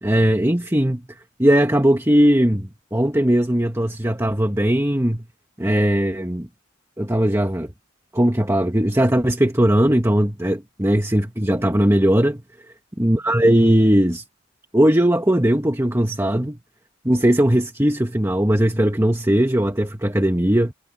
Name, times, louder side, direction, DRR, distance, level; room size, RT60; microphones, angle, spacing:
voice 1, 0.0-1.0 1.4-5.3 5.6-6.5 7.0-7.7 8.1-12.4 13.0-14.2 14.7-16.6 17.1-20.7, right 1 dB, 15° right, 1.7 m, -19 dB
head